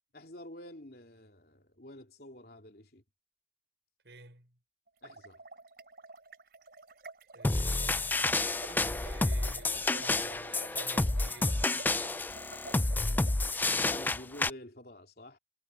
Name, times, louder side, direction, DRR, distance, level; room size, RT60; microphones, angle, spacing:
voice 1, 0.1-3.0 5.0-5.4 13.1-15.4, left 1 dB, 60° left, 3.3 m, -49 dB
voice 2, 4.0-4.5 7.3-11.6, right 2 dB, 80° right, 5.2 m, -52 dB
sound 1, 4.9-13.4, right 3 dB, 60° right, 4.2 m, -50 dB
sound 2, 7.4-14.5, left 2 dB, 10° left, 0.3 m, -30 dB
head